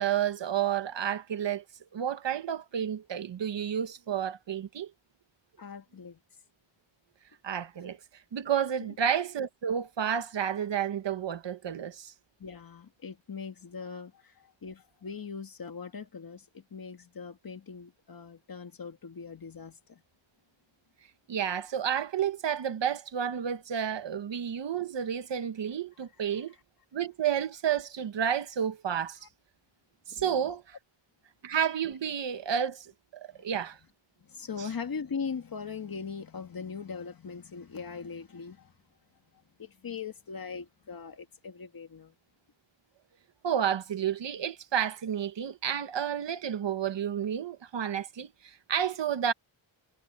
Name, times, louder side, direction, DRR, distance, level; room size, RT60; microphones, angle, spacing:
voice 1, 0.0-1.6 1.9-4.9 7.4-8.0 8.3-12.1 21.3-26.5 26.9-29.2 30.1-30.8 31.4-33.8 43.4-49.3, right 9 dB, 60° right, 1.2 m, -31 dB
voice 2, 5.6-6.2 8.8-9.0 12.4-20.0 29.2-29.3 30.1-30.5 33.3-33.4 34.2-38.7 39.3-42.1, left 5 dB, 45° left, 2.2 m, -40 dB
wide cardioid pair, 165°, 48 cm